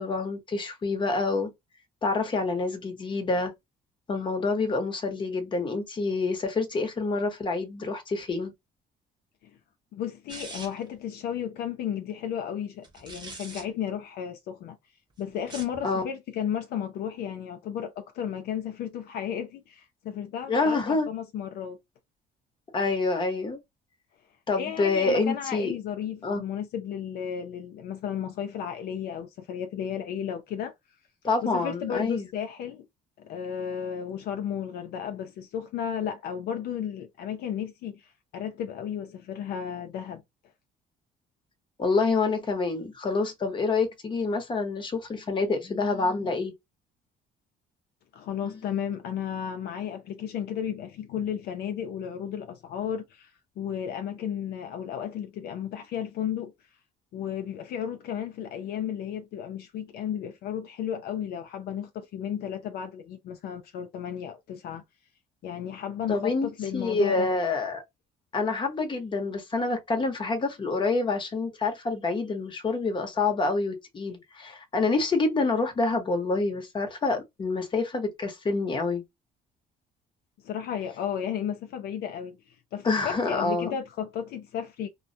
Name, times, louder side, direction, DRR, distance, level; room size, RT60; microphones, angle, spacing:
voice 1, 0.0-1.5 2.0-3.5 4.1-8.5 15.8-16.0 20.5-21.1 22.7-23.6 24.5-25.7 26.2-26.4 31.2-32.3 41.8-46.5 48.4-48.6 66.1-67.8 68.3-79.0 82.8-83.7, left 3 dB, 30° left, 0.8 m, -27 dB
voice 2, 9.9-14.8 15.2-21.8 24.6-30.7 31.4-32.9 33.2-40.2 48.1-56.5 57.1-64.8 65.4-67.3 80.4-84.9, left 9 dB, 70° left, 0.5 m, -34 dB
sound 1, 10.3-10.9 12.8-13.6 15.4-15.8, right 3 dB, 25° right, 0.8 m, -42 dB
2.3 x 2.1 x 2.6 m
cardioid pair, 110°, 17 cm